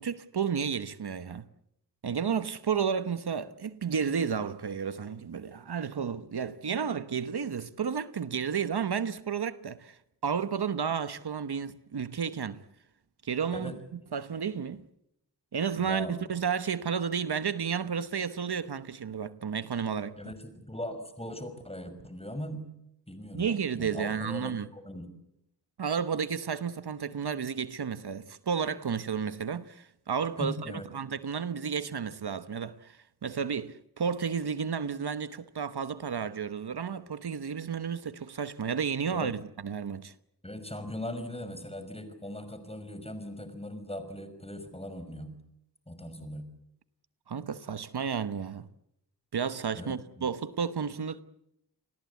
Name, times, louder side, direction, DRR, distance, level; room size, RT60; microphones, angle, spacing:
voice 1, 0.0-1.5 2.0-12.6 13.2-13.8 14.1-14.8 15.5-20.2 23.3-24.7 25.8-40.1 47.3-48.7 49.3-51.2, right 6 dB, 75° right, 1.1 m, -32 dB
voice 2, 15.8-16.1 20.2-22.7 23.1-23.5 23.7-25.1 30.4-30.9 39.1-39.3 40.4-45.4 45.9-46.4 49.7-50.3, left 1 dB, 15° left, 5.6 m, -39 dB
29.5 x 21.0 x 8.3 m
wide cardioid pair, 70°, 40 cm